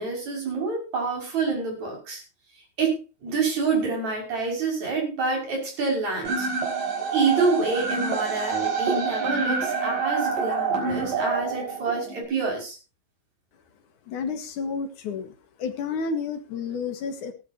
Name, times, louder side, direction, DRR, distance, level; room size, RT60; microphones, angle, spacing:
voice 1, 0.0-2.2 2.8-3.0 3.2-6.5 7.1-12.8, right 4 dB, 55° right, 0 dB, 7.3 m, -27 dB
sound 1, 6.3-12.2, right 4 dB, 75° right, 6.3 m, -27 dB
voice 2, 14.1-15.3 15.6-17.3, left 5 dB, 65° left, 7 dB, 3.1 m, -30 dB
18.0 x 13.0 x 2.8 m, 0.32 s
omnidirectional pair, 3.9 m